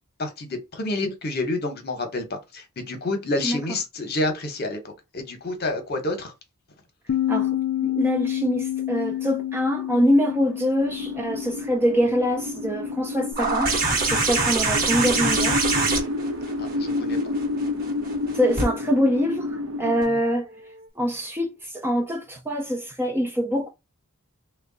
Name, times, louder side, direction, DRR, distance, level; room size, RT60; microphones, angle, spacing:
voice 1, 0.2-4.8 5.1-6.3 16.6-17.2 20.1-20.2, left 2 dB, 45° left, 0.9 m, -29 dB
Bass guitar, 7.1-13.3, left 12 dB, 65° left, 0.4 m, -29 dB
voice 2, 7.8-15.6 18.3-20.5 21.0-23.7, equal, 10° right, 0.5 m, -24 dB
sound 1, 10.8-20.0, left 2 dB, 70° right, 0.8 m, -30 dB
sound 2, 13.4-18.7 20.0-20.1, right 3 dB, 40° right, 1.1 m, -24 dB
3.1 x 2.2 x 3.8 m
head